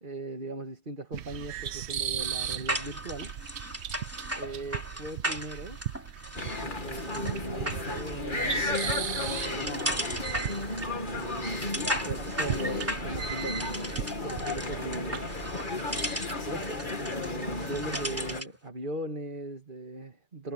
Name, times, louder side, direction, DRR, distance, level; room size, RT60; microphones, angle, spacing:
voice 1, 0.0-3.3 4.4-5.8 6.6-10.0 11.1-11.7 12.1-13.9 14.2-15.3 16.4-20.5, right 2 dB, 50° right, 2.4 m, -39 dB
sound 1, 1.1-15.7, right 10 dB, 75° right, 1.0 m, -38 dB
sound 2, 2.2-18.6, right 1 dB, 10° right, 3.2 m, -37 dB
sound 3, 6.4-18.4, left 2 dB, 45° left, 2.5 m, -34 dB
omnidirectional pair, 1.1 m